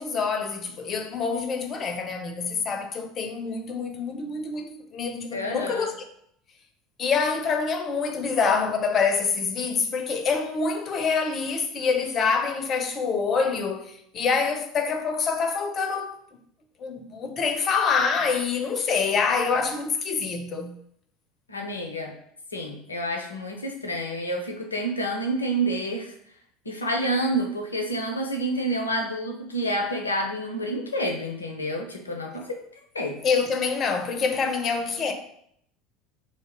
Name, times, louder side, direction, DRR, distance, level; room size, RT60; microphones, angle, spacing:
voice 1, 0.0-5.9 7.0-16.2 16.8-20.8 33.2-35.1, left 5 dB, 35° left, 0.6 m, -26 dB
voice 2, 5.3-5.9 21.5-22.1 22.5-26.1 26.7-32.6 32.9-33.2, right 1 dB, 80° left, 0.6 m, -28 dB
3.1 x 2.8 x 4.5 m
figure-of-eight pair, 70°, 0 cm